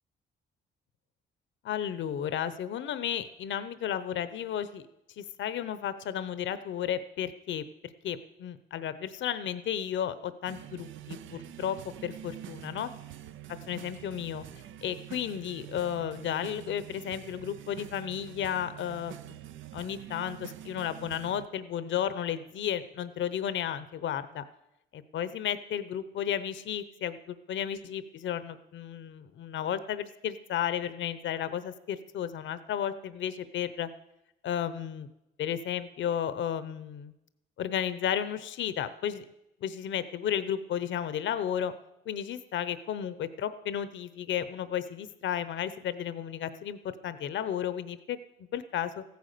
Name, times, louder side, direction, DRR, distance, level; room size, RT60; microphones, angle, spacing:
voice 1, 1.6-4.9 5.2-12.9 13.7-14.5 14.8-19.2 19.7-24.4 24.9-33.9 34.4-35.1 35.4-37.1 37.6-39.2 39.6-41.7 42.1-48.2 48.5-49.0, left 9 dB, 70° left, 13 dB, 0.9 m, -33 dB
sound 1, 10.4-21.5, right 12 dB, 80° right, 0.6 m, -46 dB
14.5 x 9.5 x 6.7 m, 0.88 s
cardioid pair, 90°, 20 cm